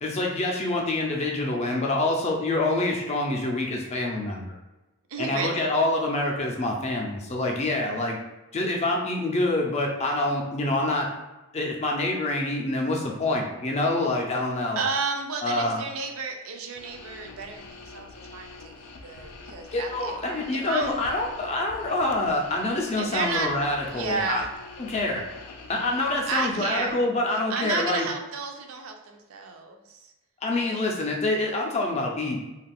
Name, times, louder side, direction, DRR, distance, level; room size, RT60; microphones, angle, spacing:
voice 1, 0.0-4.5 5.2-8.2 8.5-11.1 11.5-14.8 15.4-15.8 19.7-24.4 24.8-25.2 25.7-28.1 30.4-32.4, left 2 dB, 30° left, 0 dB, 0.4 m, -26 dB
voice 2, 5.1-5.7 14.8-18.7 19.0-21.1 23.0-23.6 23.9-24.5 26.3-27.0 27.5-30.1 30.6-30.8, right 4 dB, 65° right, 4 dB, 0.4 m, -32 dB
sound 1, 16.7-26.9, left 3 dB, 90° left, 0.4 m, -45 dB
2.4 x 2.3 x 3.4 m, 1.0 s
head